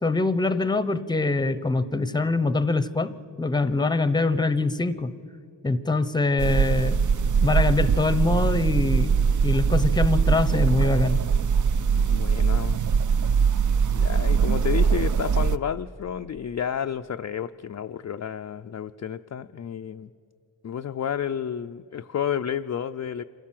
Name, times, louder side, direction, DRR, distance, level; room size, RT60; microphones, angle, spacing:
voice 1, 0.0-3.1 3.4-5.1 5.6-7.0 7.4-9.2 9.4-11.2, left 3 dB, 10° left, 13 dB, 0.7 m, -24 dB
sound 1, 6.4-15.6, right 6 dB, 45° right, 0.5 m, -22 dB
voice 2, 12.0-12.8 13.9-20.1 20.6-23.2, left 8 dB, 40° left, 7 dB, 0.4 m, -31 dB
27.0 x 14.0 x 7.5 m, 2.5 s
wide cardioid pair, 105°, 45 cm